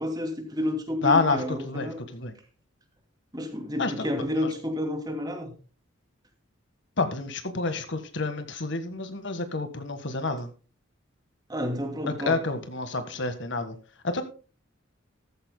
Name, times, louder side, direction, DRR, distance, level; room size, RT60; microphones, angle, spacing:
voice 1, 0.0-2.0 3.3-5.5 11.5-12.4, left 1 dB, 20° right, 4 dB, 2.7 m, -30 dB
voice 2, 1.0-2.3 3.8-4.1 7.0-10.5 12.2-13.8 14.0-14.2, left 3 dB, 65° left, 9 dB, 1.7 m, -28 dB
14.5 x 14.0 x 2.2 m, 0.35 s
head